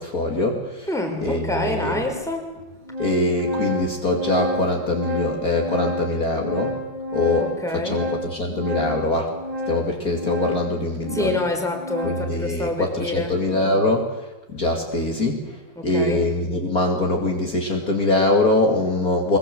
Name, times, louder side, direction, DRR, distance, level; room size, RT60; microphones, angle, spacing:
voice 1, 0.0-0.9 1.2-2.0 3.0-6.7 7.1-7.5 7.7-9.3 9.7-11.4 12.0-14.1 14.5-15.4 15.8-19.4, left 2 dB, 40° left, 1 dB, 3.0 m, -23 dB
voice 2, 0.9-2.5 7.4-8.0 11.1-13.3 15.8-16.2, left 2 dB, ahead, 3 dB, 4.4 m, -27 dB
Organ, 1.2-1.3 2.1-2.2 2.6-12.4, left 1 dB, 55° right, 4.2 m, -30 dB
23.0 x 22.5 x 7.8 m, 1.1 s
omnidirectional pair, 2.4 m